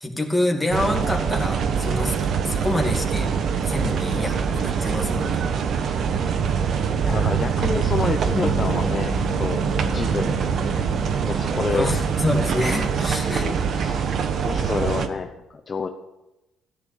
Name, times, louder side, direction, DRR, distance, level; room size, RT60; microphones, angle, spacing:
voice 1, 0.0-2.1 2.4-3.3 3.6-5.4 11.7-13.5, left 1 dB, 5° left, 1 dB, 2.4 m, -26 dB
sound 1, 0.7-15.1, right 6 dB, 50° right, 1.2 m, -24 dB
voice 2, 7.0-9.1 9.4-9.6 9.9-10.4 11.2-11.9 12.5-15.3 15.7-15.9, left 5 dB, 30° left, 5 dB, 0.8 m, -29 dB
sound 2, 8.3-12.9, left 8 dB, 65° left, 1.4 m, -36 dB
14.5 x 10.5 x 7.3 m, 0.98 s
cardioid pair, 135°, 0 cm